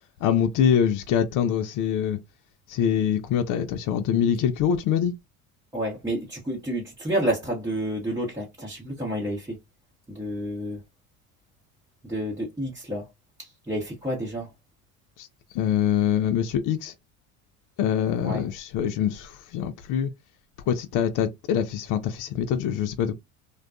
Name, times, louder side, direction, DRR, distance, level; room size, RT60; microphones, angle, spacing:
voice 1, 0.2-2.2 2.7-5.1 15.2-15.3 15.5-16.9 17.8-20.1 20.7-23.1, left 8 dB, 50° left, 0.5 m, -24 dB
voice 2, 5.7-9.6 10.1-10.8 12.0-13.1 13.4-14.5 18.2-18.4, right 1 dB, 10° right, 0.8 m, -30 dB
2.5 x 2.2 x 2.2 m
hypercardioid pair, 80°, 43 cm